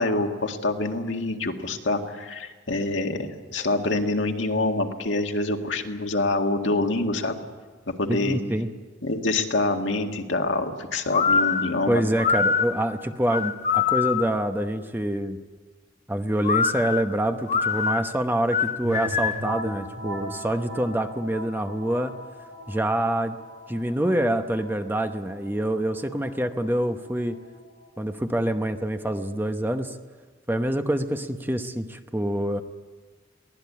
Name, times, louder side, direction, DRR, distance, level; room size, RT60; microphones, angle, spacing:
voice 1, 0.0-7.4 7.9-8.4 9.0-12.0, left 2 dB, 70° left, 3 dB, 2.0 m, -26 dB
voice 2, 8.1-8.7 11.9-15.4 16.1-22.1 22.7-23.4 23.7-27.4 28.0-29.9 30.5-32.6, right 1 dB, 10° right, 7 dB, 0.9 m, -26 dB
sound 1, 11.1-14.4 16.4-19.5, left 6 dB, 40° left, 0.9 m, -24 dB
sound 2, 18.8-28.4, equal, 85° right, 3.4 m, -39 dB
23.0 x 16.5 x 8.6 m, 1.4 s
head